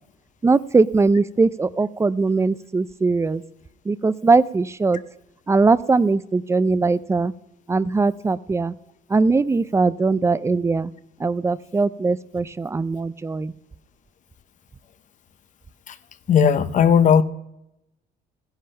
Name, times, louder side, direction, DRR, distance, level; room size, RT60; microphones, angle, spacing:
voice 1, 0.4-3.4 3.9-5.0 5.5-7.3 7.7-8.7 9.1-10.9 11.2-13.5, right 3 dB, 15° right, 0.5 m, -20 dB
voice 2, 16.3-17.2, left 7 dB, 45° left, 0.8 m, -16 dB
15.0 x 10.5 x 5.6 m
cardioid pair, 110°, 17 cm